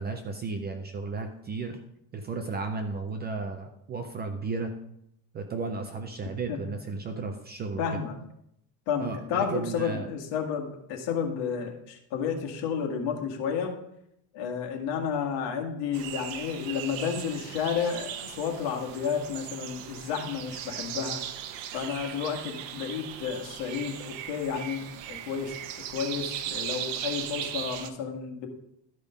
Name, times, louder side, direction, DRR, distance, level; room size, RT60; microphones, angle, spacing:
voice 1, 0.0-1.8 2.1-4.7 5.3-7.8 9.0-10.1, right 4 dB, 25° right, 6 dB, 0.3 m, -34 dB
voice 2, 7.8-8.2 8.9-13.7 14.3-21.2 21.7-25.6 25.9-28.5, left 7 dB, 65° left, 3 dB, 1.9 m, -31 dB
sound 1, 15.9-27.9, right 10 dB, 75° right, 0.9 m, -38 dB
12.0 x 5.2 x 5.0 m, 0.77 s
cardioid pair, 165°, 46 cm